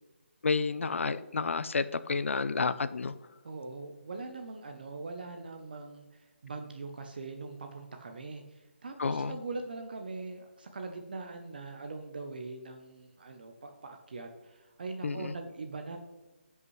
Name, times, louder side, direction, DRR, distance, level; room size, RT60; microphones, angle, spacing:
voice 1, 0.4-3.1 9.0-9.4 15.0-15.3, left 4 dB, 85° left, 14 dB, 0.5 m, -30 dB
voice 2, 3.4-16.0, right 3 dB, 45° right, 5 dB, 0.7 m, -42 dB
15.0 x 5.6 x 3.1 m, 1.2 s
hypercardioid pair, 175°, 7 cm